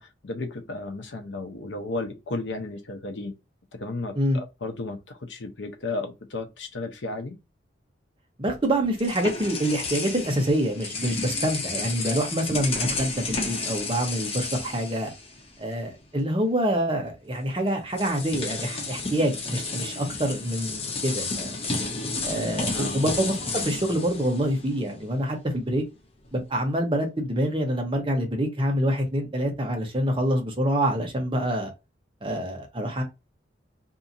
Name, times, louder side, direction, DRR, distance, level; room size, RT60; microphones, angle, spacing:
voice 1, 0.0-3.4 3.7-7.4 22.7-23.0, left 2 dB, 75° left, 0.7 m, -34 dB
voice 2, 8.4-15.1 15.6-21.6 22.2-25.8 26.3-31.7 32.2-33.0, right 1 dB, 30° right, 0.8 m, -26 dB
sound 1, 8.5-15.7 16.0-16.2 17.3-17.4 17.9-25.1, left 3 dB, 30° left, 0.6 m, -32 dB
2.7 x 2.6 x 2.5 m
head